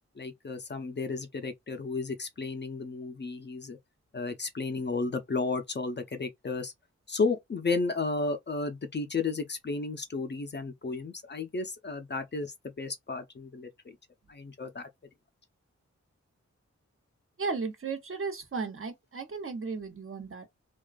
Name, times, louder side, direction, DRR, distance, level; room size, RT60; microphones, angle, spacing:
voice 1, 0.2-3.8 4.1-6.7 7.1-14.0 14.3-14.9, left 3 dB, 40° left, 0.5 m, -33 dB
voice 2, 17.4-20.5, right 4 dB, 45° right, 0.7 m, -35 dB
2.4 x 2.2 x 2.3 m
cardioid pair, 45°, 29 cm